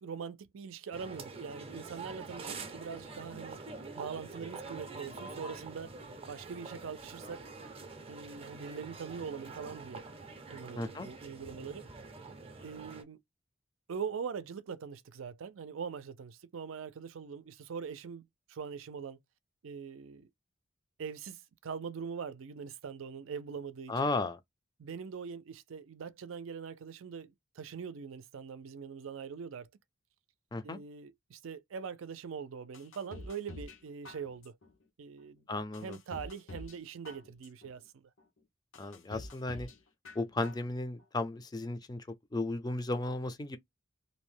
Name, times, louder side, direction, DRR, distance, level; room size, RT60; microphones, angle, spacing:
voice 1, 0.0-3.6 4.0-5.9 6.3-7.4 8.1-10.1 10.5-11.8 12.6-13.2 13.9-19.2 19.6-20.3 21.0-24.1 24.8-29.7 30.6-34.6 35.0-35.4 35.8-38.1, right 6 dB, 80° right, 0.4 m, -42 dB
sound 1, 0.9-13.0, right 3 dB, 30° right, 0.5 m, -46 dB
voice 2, 10.8-11.1 23.9-24.4 30.5-30.8 35.5-36.0 38.8-39.7 40.2-43.6, left 2 dB, 20° left, 0.4 m, -35 dB
sound 2, 32.7-33.8 34.0-34.7 35.2-35.3 35.7-36.8 37.0-37.7 38.2-38.3 38.7-39.8 40.0-40.7 41.0-41.1, left 2 dB, 80° left, 0.9 m, -47 dB
2.7 x 2.1 x 3.1 m
head